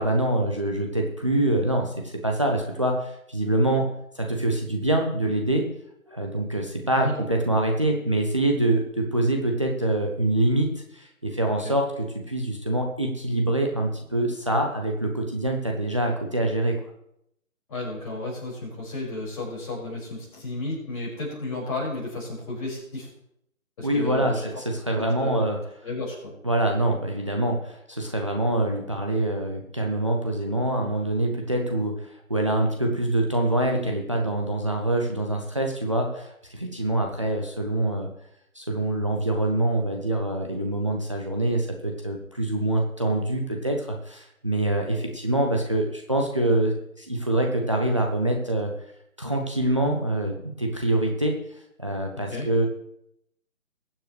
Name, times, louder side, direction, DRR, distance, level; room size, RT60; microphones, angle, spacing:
voice 1, 0.0-5.6 6.1-10.7 10.9-16.8 23.8-25.6 26.4-38.1 38.5-48.7 49.2-51.3 51.8-52.7, right 1 dB, 20° right, 2 dB, 0.7 m, -25 dB
voice 2, 17.7-23.1 23.8-24.4 24.9-25.4 25.8-26.3 52.2-52.5, left 2 dB, 25° left, -6 dB, 5.6 m, -33 dB
22.0 x 7.5 x 3.3 m, 0.78 s
figure-of-eight pair, 160°, 42 cm